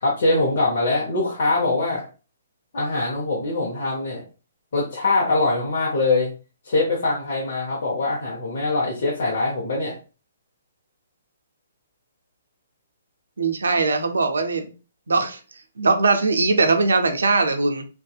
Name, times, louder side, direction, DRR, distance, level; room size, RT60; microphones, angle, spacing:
voice 1, 0.0-2.0 2.7-4.2 4.7-6.3 6.6-10.0, left 2 dB, 60° left, 0.7 m, -23 dB
voice 2, 13.4-14.7 15.1-15.4 15.8-17.9, right 3 dB, 75° right, 0.4 m, -20 dB
2.6 x 2.3 x 2.3 m
hypercardioid pair, 130°, 0 cm